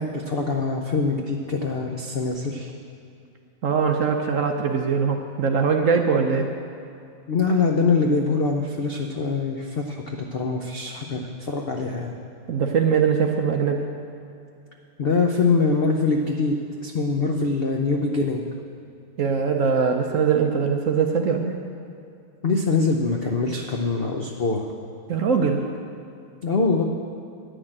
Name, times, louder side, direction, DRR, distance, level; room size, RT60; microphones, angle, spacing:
voice 1, 0.0-2.7 7.3-12.1 15.0-16.6 16.8-18.4 22.4-24.7 26.4-26.8, left 4 dB, 70° left, 2 dB, 0.5 m, -23 dB
voice 2, 3.6-6.5 12.5-13.8 19.2-21.5 25.1-25.6, right 6 dB, 60° right, 3 dB, 0.9 m, -21 dB
10.0 x 6.3 x 8.7 m, 2.5 s
omnidirectional pair, 1.9 m